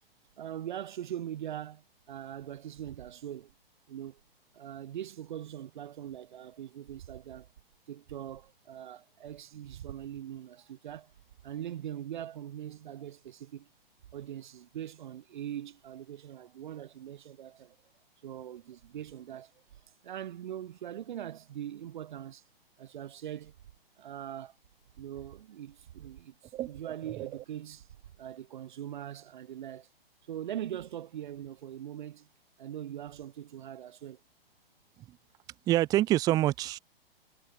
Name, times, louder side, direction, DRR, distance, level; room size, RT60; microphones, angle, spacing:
voice 1, 0.4-3.5 3.9-4.2 4.5-7.5 7.9-11.1 11.4-13.7 14.1-17.8 18.2-19.5 19.9-22.4 22.8-23.5 24.0-24.6 25.0-27.9 28.2-29.9 30.2-32.3 32.6-34.2, right 11 dB, 50° right, 1.0 m, -41 dB
voice 2, 35.7-36.8, right 15 dB, 10° right, 0.5 m, -26 dB
figure-of-eight pair, 120°, 30 cm